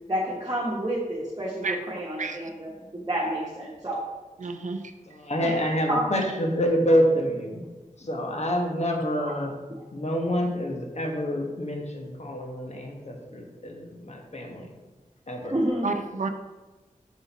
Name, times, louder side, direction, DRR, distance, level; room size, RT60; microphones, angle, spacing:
voice 1, 0.1-4.1 5.4-5.6 5.9-6.1 9.2-9.3 15.5-15.9, right 1 dB, 30° right, -5 dB, 1.2 m, -29 dB
voice 2, 4.4-4.8 15.8-16.3, right 4 dB, 65° right, 6 dB, 0.5 m, -29 dB
voice 3, 5.1-7.6 8.0-9.6 9.9-14.7 15.3-15.6, equal, 50° left, 1 dB, 1.1 m, -27 dB
6.2 x 3.8 x 4.0 m, 1.2 s
wide cardioid pair, 55°, 14 cm